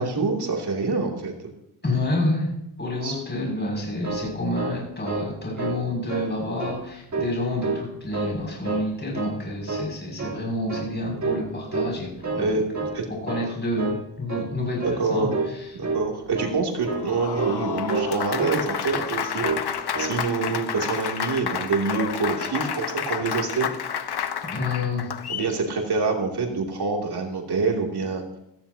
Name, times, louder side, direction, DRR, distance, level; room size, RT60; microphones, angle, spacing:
voice 1, 0.0-1.3 3.0-3.1 12.3-12.6 12.9-13.0 15.0-15.3 15.8-23.7 25.3-28.2, right 4 dB, 55° right, 0 dB, 2.9 m, -26 dB
voice 2, 1.8-2.5 2.8-15.7 24.5-25.1, left 1 dB, 20° left, -2 dB, 6.8 m, -29 dB
sound 1, 3.8-5.3 5.6-5.8 6.1-6.8 7.1-7.9 8.1-8.9 9.1-9.4 9.7-10.4 10.7-10.9 11.2-11.5 11.7-12.5 12.7-13.0 13.3-13.5 13.8-14.0 14.3-14.5 14.8-15.0 15.3-15.6 15.8-16.1 16.3-16.6 16.8-17.1 17.4-17.6 17.9-18.6 18.9-19.1 19.4-19.7 19.9-20.2, right 3 dB, 35° right, 3.4 m, -29 dB
Applause, 16.8-25.5, left 8 dB, 55° left, 1.1 m, -30 dB
16.5 x 15.5 x 2.9 m, 0.81 s
cardioid pair, 85°, 47 cm